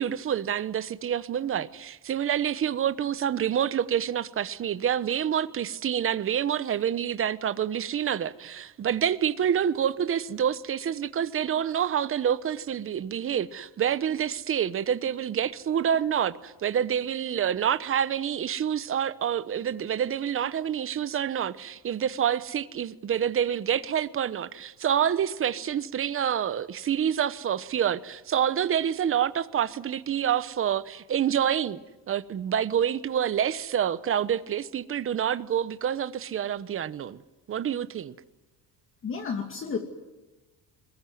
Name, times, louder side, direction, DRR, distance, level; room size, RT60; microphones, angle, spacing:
voice 1, 0.0-31.8 32.1-37.2 37.5-38.1, right 9 dB, 35° right, 1.0 m, -27 dB
voice 2, 39.0-39.8, left 5 dB, 35° left, 2.8 m, -31 dB
22.5 x 21.5 x 9.5 m
cardioid pair, 130°, 36 cm